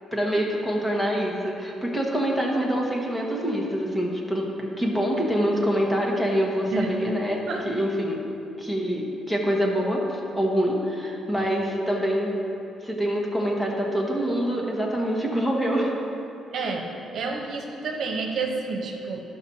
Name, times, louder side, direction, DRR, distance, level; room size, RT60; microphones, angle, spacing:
voice 1, 0.1-8.2 8.6-12.3 12.8-15.9, equal, 10° left, -2 dB, 1.3 m, -25 dB
voice 2, 16.5-16.8 17.1-19.2, right 4 dB, 65° right, 1 dB, 0.9 m, -29 dB
11.0 x 5.9 x 2.8 m, 2.7 s
cardioid pair, 90°, 0 cm